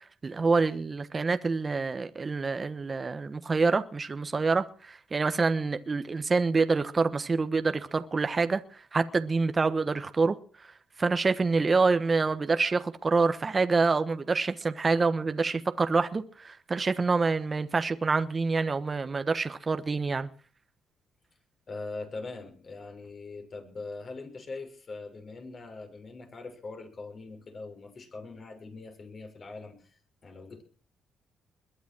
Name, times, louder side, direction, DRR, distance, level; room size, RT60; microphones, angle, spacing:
voice 1, 0.2-8.6 8.9-10.3 11.0-20.3, right 4 dB, 30° right, 1.2 m, -26 dB
voice 2, 21.7-30.6, left 3 dB, 45° left, 6.6 m, -42 dB
21.5 x 10.5 x 6.2 m
cardioid pair, 90°, 0 cm